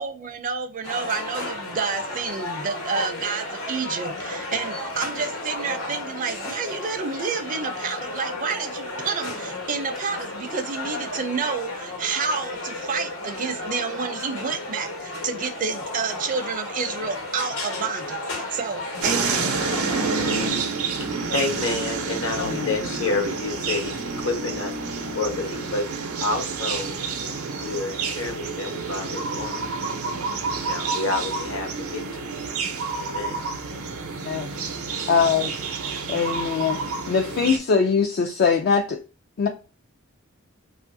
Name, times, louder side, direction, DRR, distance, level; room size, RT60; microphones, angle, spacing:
voice 1, 0.0-19.6, right 5 dB, 40° right, 0.4 m, -29 dB
sound 1, 0.8-20.5, left 2 dB, 90° left, 1.1 m, -33 dB
sound 2, 19.0-37.6, right 4 dB, 85° right, 0.6 m, -29 dB
voice 2, 20.1-25.9 26.2-27.0 27.5-29.7 30.6-32.4 33.0-33.4 33.8-33.9, left 3 dB, 65° left, 1.0 m, -30 dB
voice 3, 35.1-35.5 36.1-39.0 39.4-39.5, left 5 dB, 50° left, 0.3 m, -22 dB
2.9 x 2.4 x 2.5 m
head